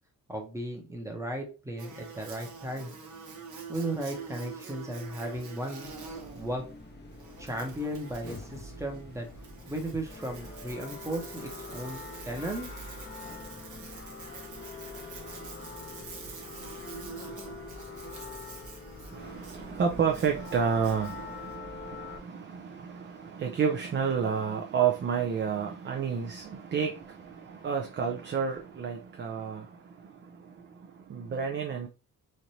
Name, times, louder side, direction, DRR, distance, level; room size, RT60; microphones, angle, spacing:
voice 1, 0.3-3.0 3.7-6.7 7.4-9.3 9.7-12.7, right 1 dB, 10° right, 0.8 m, -36 dB
Buzz, 1.8-21.6, right 5 dB, 60° right, 1.0 m, -46 dB
sound 1, 5.8-22.2, left 4 dB, 30° left, 0.6 m, -44 dB
voice 2, 19.1-31.9, right 6 dB, 35° right, 0.4 m, -31 dB
3.2 x 2.5 x 2.7 m
cardioid pair, 115°, 34 cm